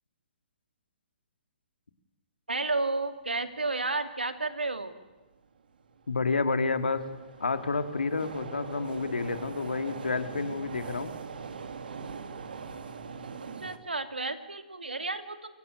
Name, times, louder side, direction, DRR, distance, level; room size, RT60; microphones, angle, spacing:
voice 1, 2.5-4.9 13.6-15.5, right 3 dB, 90° right, 9 dB, 2.3 m, -32 dB
sound 1, 5.1-5.2 5.8-13.8, right 5 dB, 70° right, 2.3 m, -42 dB
voice 2, 6.1-7.1 7.4-11.2, left 4 dB, 80° left, 9 dB, 2.2 m, -29 dB
24.5 x 18.0 x 9.2 m, 1.2 s
figure-of-eight pair, 130°, 5 cm